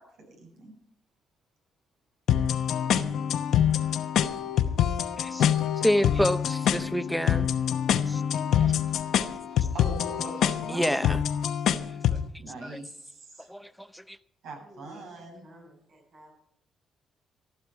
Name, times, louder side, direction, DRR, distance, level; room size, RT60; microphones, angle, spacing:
voice 1, 0.3-0.7 9.5-10.8 12.4-13.5 14.4-15.4, right 2 dB, 80° right, 7.6 m, -42 dB
sound 1, 2.3-12.3, left 9 dB, 75° left, 0.9 m, -26 dB
voice 2, 5.2-7.5 8.1-8.2 8.5-8.7 10.7-11.2 12.6-12.8 13.4-14.2, equal, ahead, 0.8 m, -28 dB
voice 3, 14.5-16.3, equal, 55° right, 5.5 m, -53 dB
15.5 x 12.0 x 4.7 m
cardioid pair, 90°, 0 cm